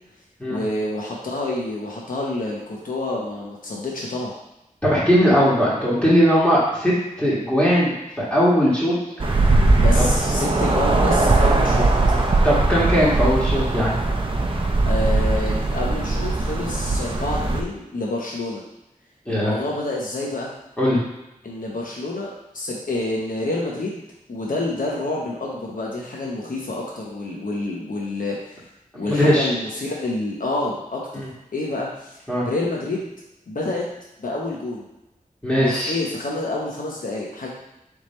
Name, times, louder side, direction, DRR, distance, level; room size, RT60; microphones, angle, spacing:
voice 1, 0.5-4.3 9.8-11.9 14.9-18.6 19.3-20.5 21.4-22.3 22.5-24.0 24.3-28.6 28.9-31.2 31.5-32.2 32.4-33.1 33.5-33.8 34.2-34.9 35.6-37.5, left 2 dB, 75° left, -3 dB, 0.9 m, -28 dB
voice 2, 4.8-9.3 9.9-10.0 12.4-14.0 19.3-19.5 20.8-21.0 29.0-29.5 31.1-31.3 32.3-32.4 35.4-35.9, equal, 10° left, -8 dB, 1.6 m, -19 dB
sound 1, 9.2-17.6, right 2 dB, 40° right, 0.6 m, -20 dB
3.6 x 3.2 x 4.2 m, 0.93 s
wide cardioid pair, 65°, 14 cm